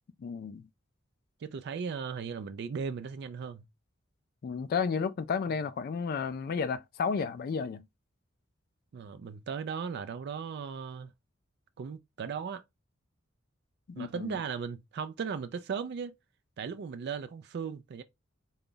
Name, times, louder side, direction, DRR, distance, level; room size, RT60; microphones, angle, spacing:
voice 1, 0.2-0.6 4.4-7.8 13.9-14.3, left 5 dB, 50° left, 0.3 m, -32 dB
voice 2, 1.4-3.6 8.9-11.1 11.8-12.6 14.0-16.1 16.6-18.0, right 6 dB, 55° right, 0.3 m, -37 dB
3.8 x 2.3 x 3.7 m
head